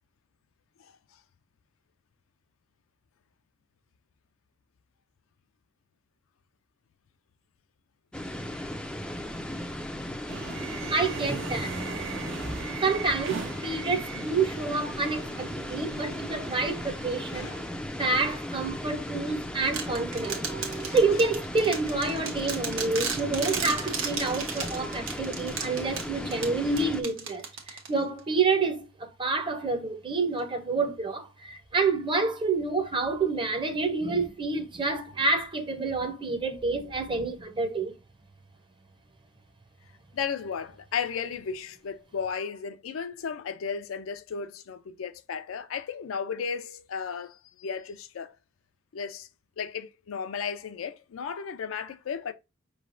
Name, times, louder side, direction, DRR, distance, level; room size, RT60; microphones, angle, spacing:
sound 1, 8.1-27.0, left 1 dB, 5° left, 0.3 m, -36 dB
sound 2, 10.3-17.6, right 6 dB, 65° right, 0.5 m, -40 dB
voice 1, 10.6-17.5 18.0-37.9, right 3 dB, 25° right, 0.6 m, -28 dB
sound 3, 19.7-28.2, right 6 dB, 80° right, 1.1 m, -35 dB
voice 2, 40.1-48.4 48.9-49.3 49.6-52.3, left 6 dB, 80° left, 0.4 m, -35 dB
5.4 x 3.2 x 2.5 m
head